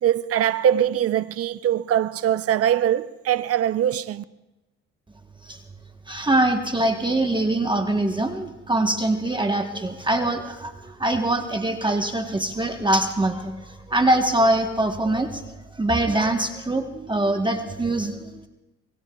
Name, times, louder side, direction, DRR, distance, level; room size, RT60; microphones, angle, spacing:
voice 1, 0.0-4.2, right 10 dB, 50° right, 0.6 m, -22 dB
voice 2, 6.1-15.4 15.8-18.5, right 1 dB, 15° right, 1.1 m, -23 dB
26.0 x 22.0 x 2.3 m
cardioid pair, 90°, 30 cm